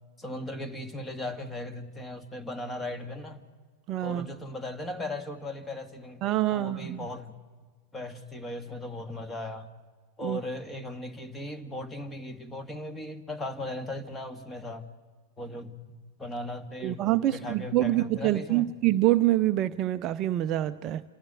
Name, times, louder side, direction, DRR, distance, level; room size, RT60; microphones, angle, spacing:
voice 1, 0.2-3.4 4.0-6.2 6.5-7.4 7.9-9.7 10.2-14.8 15.4-18.7, left 1 dB, 15° left, 7 dB, 2.0 m, -37 dB
voice 2, 3.9-4.3 6.2-7.1 10.2-10.4 16.8-21.0, right 15 dB, 35° right, 12 dB, 0.6 m, -26 dB
27.5 x 13.5 x 8.1 m, 1.5 s
figure-of-eight pair, 90°, 0 cm